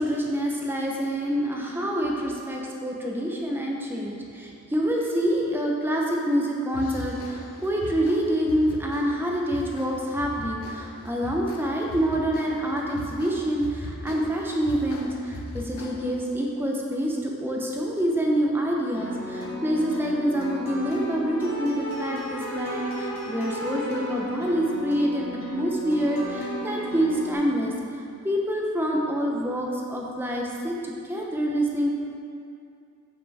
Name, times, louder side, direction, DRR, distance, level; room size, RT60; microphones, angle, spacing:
voice 1, 0.0-27.7 28.2-31.9, equal, 10° right, -2 dB, 0.7 m, -26 dB
sound 1, 6.7-16.3, left 2 dB, 90° left, 0.6 m, -40 dB
sound 2, 18.9-27.3, equal, 70° left, 1.3 m, -33 dB
8.0 x 7.7 x 3.5 m, 2.5 s
head